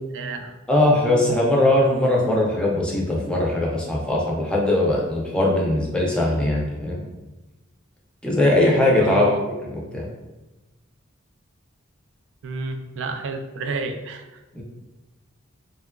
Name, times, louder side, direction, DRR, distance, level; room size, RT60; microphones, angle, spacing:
voice 1, 0.1-0.5 9.0-9.4 12.4-14.4, right 4 dB, 65° right, 6 dB, 0.3 m, -30 dB
voice 2, 0.7-7.0 8.2-9.3 9.6-10.1 14.6-14.7, left 1 dB, 5° left, -4 dB, 0.4 m, -20 dB
2.7 x 2.3 x 2.2 m, 1.1 s
head